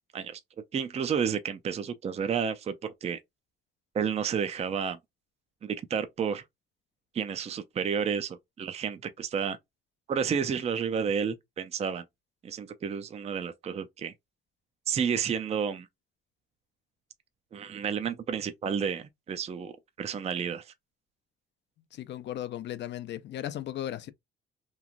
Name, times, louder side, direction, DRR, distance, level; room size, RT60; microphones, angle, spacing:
voice 1, 0.7-3.2 3.9-5.0 5.6-6.4 7.1-9.6 10.1-12.0 12.4-14.1 14.9-15.9 17.5-19.7 20.0-20.7, right 7 dB, 30° right, 0.4 m, -31 dB
voice 2, 21.9-24.1, left 12 dB, 65° left, 0.4 m, -36 dB
3.0 x 2.4 x 2.4 m
cardioid pair, 90°, 20 cm